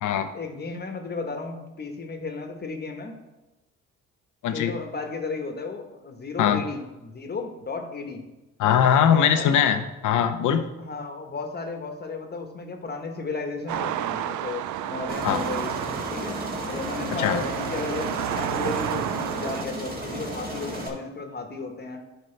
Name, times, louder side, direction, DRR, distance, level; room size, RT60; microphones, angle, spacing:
voice 1, 0.3-3.1 4.5-8.2 8.9-9.6 10.8-15.7 16.1-22.0, left 4 dB, 35° left, 5 dB, 1.2 m, -34 dB
voice 2, 8.6-10.6 15.2-15.4 17.2-17.4, left 8 dB, 80° left, 9 dB, 0.8 m, -21 dB
sound 1, 13.7-19.6, right 11 dB, 75° right, 0.5 m, -31 dB
Aircraft, 15.1-20.9, right 1 dB, 30° right, 1.8 m, -34 dB
11.0 x 5.3 x 3.3 m, 1.1 s
cardioid pair, 90°, 30 cm